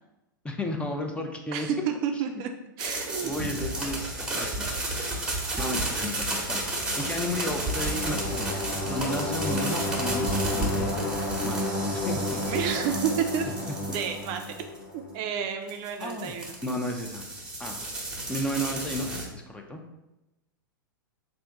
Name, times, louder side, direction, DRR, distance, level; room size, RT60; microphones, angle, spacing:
voice 1, 0.4-1.7 3.2-4.7 5.6-11.0 11.4-12.4 16.0-16.3 16.6-17.3 17.6-17.8 18.3-19.1 19.3-19.8, left 1 dB, 10° left, 2 dB, 0.5 m, -33 dB
voice 2, 1.5-2.5 2.8-3.3 5.5-5.7 12.4-13.5 13.8-14.7 15.1-16.6, right 8 dB, 40° right, 5 dB, 0.4 m, -30 dB
sound 1, 2.8-14.8 15.7-19.2, right 2 dB, 10° right, 1.0 m, -33 dB
sound 2, 6.5-15.2, left 1 dB, 50° left, 1.4 m, -32 dB
3.4 x 2.6 x 4.4 m, 0.95 s
hypercardioid pair, 105°, 12 cm